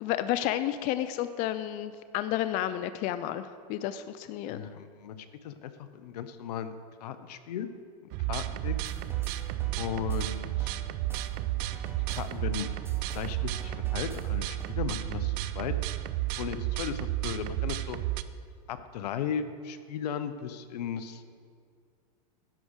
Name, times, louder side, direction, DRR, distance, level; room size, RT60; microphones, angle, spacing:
voice 1, 0.0-4.7, left 12 dB, 40° left, 12 dB, 0.4 m, -31 dB
voice 2, 4.5-6.7 7.0-7.7 8.2-8.7 9.8-10.7 12.1-12.7 13.1-15.7 16.3-18.0 18.7-21.2, left 8 dB, 75° left, 11 dB, 0.7 m, -36 dB
sound 1, 8.1-18.2, right 16 dB, 45° right, 0.4 m, -32 dB
sound 2, 8.6-14.8, right 2 dB, 10° right, 1.0 m, -47 dB
10.5 x 4.9 x 6.3 m, 2.2 s
hypercardioid pair, 120°, 20 cm